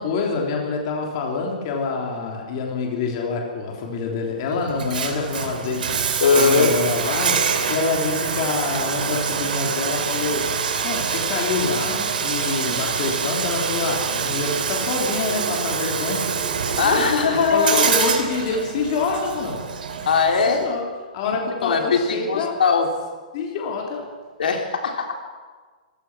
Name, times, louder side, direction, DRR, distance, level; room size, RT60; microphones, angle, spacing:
voice 1, 0.0-16.2 16.8-19.6 20.5-20.8 21.1-22.6 23.3-24.1, left 4 dB, 35° left, 0 dB, 3.3 m, -26 dB
Bathtub (filling or washing), 4.7-20.6, right 6 dB, 75° right, 3.1 m, -25 dB
voice 2, 6.2-6.7 16.8-17.9 20.1-20.6 21.2-22.9 24.4-25.1, left 5 dB, 85° left, 3 dB, 3.6 m, -20 dB
26.0 x 16.0 x 6.3 m, 1.4 s
hypercardioid pair, 175°, 5 cm